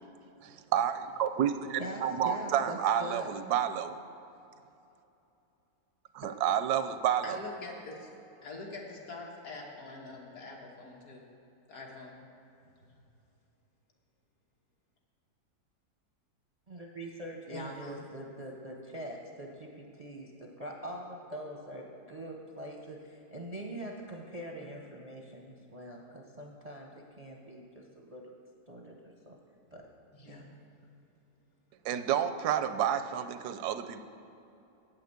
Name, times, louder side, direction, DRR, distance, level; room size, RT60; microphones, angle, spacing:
voice 1, 0.4-4.0 6.1-7.4 31.8-34.0, right 9 dB, 80° right, 11 dB, 1.1 m, -30 dB
voice 2, 1.8-3.3 16.7-26.9 27.2-28.2 28.7-29.4 29.7-29.9 30.3-30.5, right 1 dB, 40° right, 0 dB, 0.6 m, -43 dB
voice 3, 7.2-8.1 8.4-11.3 11.7-12.2 17.5-18.0 30.1-30.4, left 3 dB, 65° left, -1 dB, 1.8 m, -44 dB
8.8 x 5.9 x 7.9 m, 2.8 s
omnidirectional pair, 1.7 m